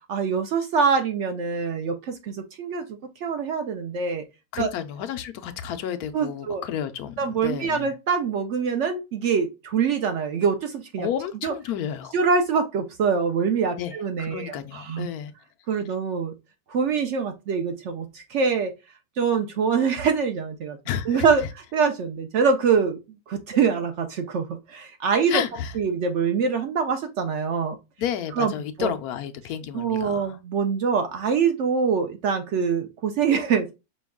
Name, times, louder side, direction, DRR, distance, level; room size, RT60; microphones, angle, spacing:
voice 1, 0.1-4.2 4.6-4.7 6.1-6.6 7.2-11.1 11.4-11.5 12.1-15.1 15.7-16.3 16.7-18.7 19.2-20.8 21.0-23.0 23.3-25.4 25.7-27.8 28.3-28.5 28.8-28.9 29.7-33.7, right 6 dB, 65° right, 0.7 m, -24 dB
voice 2, 4.5-7.9 11.0-12.1 13.8-15.3 20.9-21.3 25.3-25.7 28.0-30.4, left 9 dB, 80° left, 1.1 m, -31 dB
5.2 x 2.3 x 3.5 m
omnidirectional pair, 1.6 m